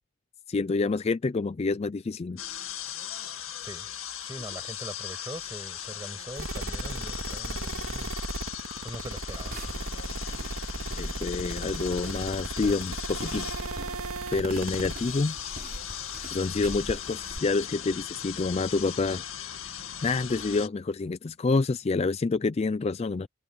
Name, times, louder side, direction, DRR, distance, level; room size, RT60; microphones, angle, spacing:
voice 1, 0.5-2.4 11.0-13.5 14.3-15.4 16.3-19.2 20.0-23.3, left 3 dB, 30° left, 0.4 m, -28 dB
sound 1, 2.4-20.7, left 10 dB, 70° left, 2.2 m, -38 dB
voice 2, 4.2-8.1 8.8-9.6, right 1 dB, 15° right, 7.0 m, -42 dB
sound 2, 6.4-15.0, right 2 dB, 80° right, 2.2 m, -35 dB
sound 3, 9.3-17.4, right 1 dB, 45° right, 4.1 m, -44 dB
head